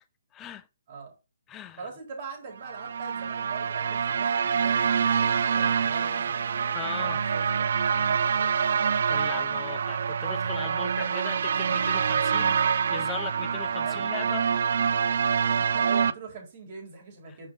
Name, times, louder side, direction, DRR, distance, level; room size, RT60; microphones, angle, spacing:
voice 1, 0.3-0.7 1.5-1.9 6.7-7.2 9.1-12.6 12.9-14.7 17.3-17.5, left 10 dB, 20° left, 0.6 m, -39 dB
voice 2, 1.8-6.5 7.0-8.5 13.8-14.1 15.5-17.5, right 5 dB, 45° right, 4.1 m, -42 dB
sound 1, 2.6-16.1, right 6 dB, 60° right, 0.4 m, -26 dB
7.0 x 5.1 x 3.9 m
figure-of-eight pair, 140°, 0 cm